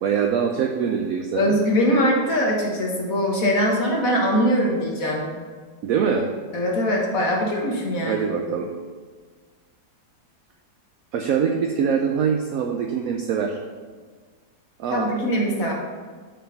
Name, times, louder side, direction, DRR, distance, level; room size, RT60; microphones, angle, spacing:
voice 1, 0.0-1.6 5.8-6.3 8.1-8.7 11.1-13.6 14.8-15.1, right 7 dB, 70° right, 3 dB, 0.9 m, -23 dB
voice 2, 1.3-5.3 6.5-8.2 14.9-15.7, equal, 55° left, -1 dB, 1.7 m, -22 dB
6.3 x 4.5 x 6.6 m, 1.5 s
omnidirectional pair, 1.8 m